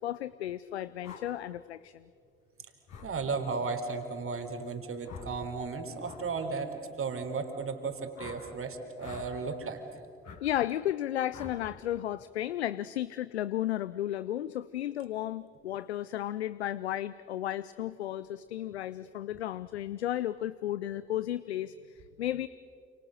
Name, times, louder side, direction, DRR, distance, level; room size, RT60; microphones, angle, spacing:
voice 1, 0.0-2.0 10.4-22.5, left 12 dB, 80° left, 16 dB, 0.6 m, -34 dB
sound 1, 1.0-1.2 2.9-3.1 5.0-5.3 6.0-6.2 8.1-8.4 9.0-9.3 10.2-10.4 11.3-11.6, left 5 dB, 55° left, 5.3 m, -45 dB
voice 2, 3.0-9.8, right 4 dB, 40° right, 6 dB, 4.2 m, -35 dB
29.0 x 28.5 x 6.6 m, 2.2 s
figure-of-eight pair, 45°, 32 cm